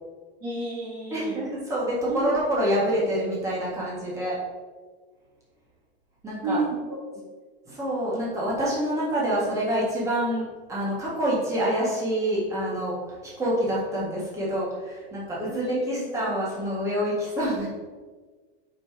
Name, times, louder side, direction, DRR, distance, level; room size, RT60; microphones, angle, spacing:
voice 1, 0.4-1.4 2.1-2.2 6.4-7.0 15.5-16.1, right 3 dB, 30° right, -4 dB, 1.5 m, -31 dB
voice 2, 1.1-4.4 6.2-6.6 7.7-17.7, equal, 10° right, -6 dB, 1.8 m, -27 dB
5.6 x 5.1 x 6.1 m, 1.4 s
supercardioid pair, 175°, 31 cm